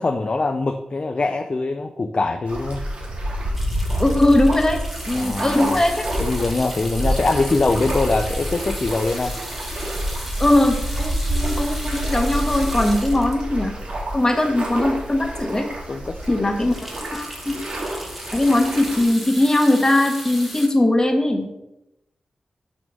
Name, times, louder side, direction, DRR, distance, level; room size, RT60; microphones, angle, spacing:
voice 1, 0.0-2.9 5.1-5.8 6.2-9.4 15.9-16.5, left 3 dB, 45° left, 6 dB, 0.5 m, -23 dB
sound 1, 2.5-19.0, right 1 dB, 60° right, 1.7 m, -28 dB
sound 2, 3.5-14.8 15.3-15.4 15.7-15.8 16.2-20.7, equal, 5° right, 1.3 m, -36 dB
voice 2, 4.0-4.8 5.1-6.0 10.4-13.7 14.1-15.6 16.3-16.7 17.1-17.5 18.3-21.4, left 1 dB, 25° left, 3 dB, 1.3 m, -19 dB
6.1 x 3.5 x 6.1 m, 0.91 s
cardioid pair, 55°, 2 cm